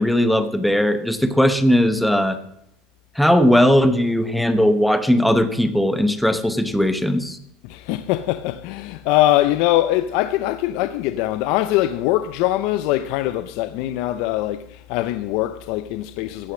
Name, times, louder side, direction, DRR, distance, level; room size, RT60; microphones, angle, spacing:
voice 1, 0.0-2.4 3.2-7.4, equal, ahead, 0.8 m, -18 dB
voice 2, 7.6-16.5, left 15 dB, 55° left, 0.6 m, -22 dB
14.5 x 9.8 x 6.2 m
supercardioid pair, 165°, 0 cm